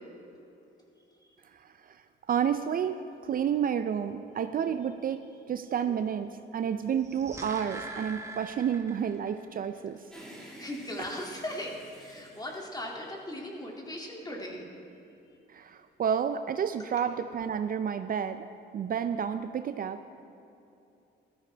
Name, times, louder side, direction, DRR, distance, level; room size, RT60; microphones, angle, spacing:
voice 1, 2.3-10.0 15.5-18.5 18.7-20.0, right 8 dB, 45° right, 10 dB, 0.5 m, -30 dB
sound 1, 6.9-9.3 9.6-9.7, right 2 dB, 15° right, 1.4 m, -43 dB
sound 2, 10.1-13.6, equal, 5° left, 3.0 m, -51 dB
voice 2, 10.3-14.7, left 1 dB, 20° left, -1 dB, 2.4 m, -39 dB
15.0 x 13.5 x 3.4 m, 2.8 s
cardioid pair, 90°, 20 cm